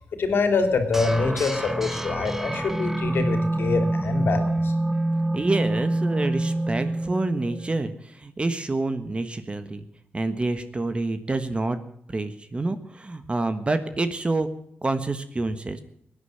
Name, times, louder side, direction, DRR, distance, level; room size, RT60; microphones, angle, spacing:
voice 1, 0.2-4.7, left 4 dB, 70° left, 7 dB, 2.9 m, -25 dB
sound 1, 0.9-7.9, right 1 dB, 10° right, 1.3 m, -26 dB
voice 2, 5.3-9.8 10.1-11.8 12.1-14.5 14.8-15.8, right 2 dB, 30° right, 10 dB, 1.4 m, -27 dB
18.5 x 10.0 x 7.7 m, 0.71 s
cardioid pair, 80°, 4 cm